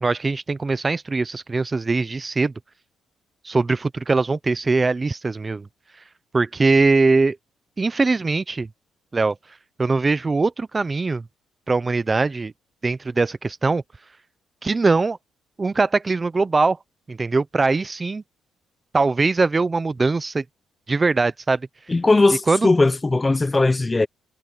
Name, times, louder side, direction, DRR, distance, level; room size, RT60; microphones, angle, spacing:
voice 1, 0.0-2.5 3.4-5.7 6.3-7.4 7.8-8.7 9.1-9.3 9.8-11.2 11.7-12.5 12.8-13.8 14.6-15.2 15.6-16.8 17.1-18.2 18.9-20.4 20.9-21.6 22.5-22.7, right 3 dB, 25° right, 0.7 m, -21 dB
voice 2, 21.9-24.1, left 3 dB, 20° left, 0.9 m, -18 dB
cardioid pair, 90°, 0 cm